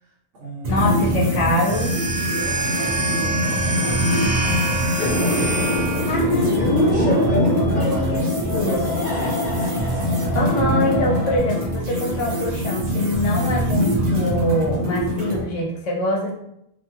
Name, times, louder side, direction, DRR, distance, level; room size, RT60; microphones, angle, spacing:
voice 1, 0.0-1.5 2.4-4.1 4.4-5.7 6.0-6.3 6.6-10.2, right 1 dB, 70° right, -3 dB, 1.1 m, -36 dB
sound 1, 0.6-15.4, equal, 50° right, 0.5 m, -23 dB
voice 2, 0.7-2.0 6.1-7.4 7.7-8.9 10.3-16.3, left 1 dB, 75° left, -1 dB, 1.0 m, -24 dB
sound 2, 1.6-6.3, right 2 dB, 30° right, 1.0 m, -26 dB
sound 3, 5.0-11.4, left 2 dB, 50° left, 1.2 m, -25 dB
2.7 x 2.3 x 2.8 m, 0.77 s
omnidirectional pair, 1.3 m